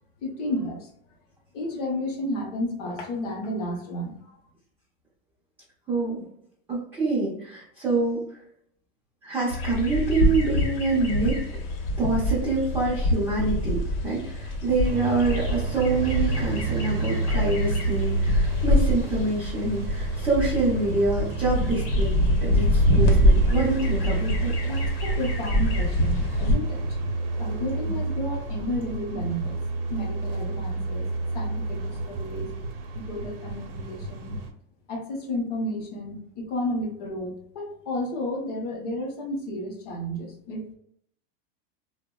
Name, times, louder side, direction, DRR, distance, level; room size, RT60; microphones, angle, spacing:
voice 1, 0.2-0.9 1.5-4.4 24.6-29.6 29.9-32.6 32.9-34.4 34.9-40.6, left 1 dB, 40° left, 1 dB, 0.7 m, -32 dB
voice 2, 5.9-6.2 6.7-8.2 9.2-11.4 12.0-22.1 22.4-24.5 27.9-28.0, right 3 dB, 5° right, -9 dB, 0.4 m, -26 dB
sound 1, 9.5-26.6, left 1 dB, 75° left, 0.8 m, -25 dB
sound 2, 14.8-34.5, right 3 dB, 65° right, 0.6 m, -30 dB
3.3 x 2.0 x 2.2 m, 0.69 s
supercardioid pair, 180°, 29 cm